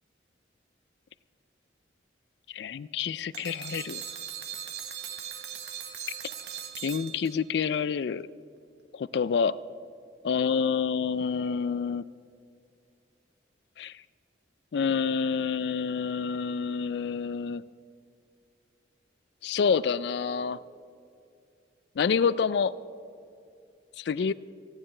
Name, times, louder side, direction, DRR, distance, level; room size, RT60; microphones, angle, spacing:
voice 1, 2.5-4.0 6.8-8.3 8.9-9.5 10.2-12.0 13.8-14.0 14.7-17.6 19.4-20.6 22.0-22.7 24.0-24.3, left 6 dB, 65° left, 18 dB, 0.3 m, -28 dB
sound 1, 3.3-7.6, right 8 dB, 60° right, 1.1 m, -39 dB
29.5 x 10.0 x 3.3 m, 2.5 s
head